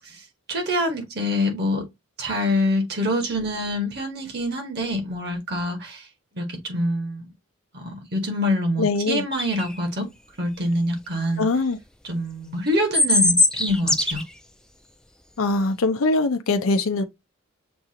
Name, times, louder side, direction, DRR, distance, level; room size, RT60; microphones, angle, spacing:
voice 1, 0.0-1.9 2.2-6.1 6.3-7.3 7.7-10.1 10.4-11.4 12.0-14.2, left 1 dB, 50° right, 1.2 m, -25 dB
voice 2, 8.8-9.2 11.4-11.8 15.4-17.0, left 3 dB, 80° left, 0.6 m, -22 dB
sound 1, 9.3-9.6 12.7-14.2, left 2 dB, 5° left, 0.3 m, -19 dB
6.8 x 2.4 x 2.8 m
head